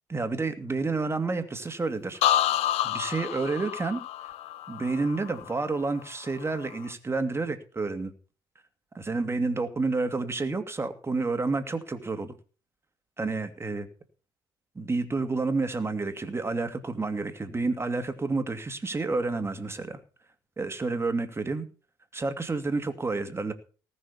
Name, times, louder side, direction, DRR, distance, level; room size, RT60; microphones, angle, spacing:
voice 1, 0.1-2.4 2.8-4.0 4.7-8.1 8.9-12.3 13.2-13.9 14.7-20.0 20.6-21.7 22.1-23.5, right 3 dB, 20° right, 8 dB, 2.6 m, -29 dB
sound 1, 2.2-6.0 6.4-6.9, left 12 dB, 60° left, 0.9 m, -29 dB
18.5 x 6.5 x 7.0 m, 0.38 s
hypercardioid pair, 55°, 12 cm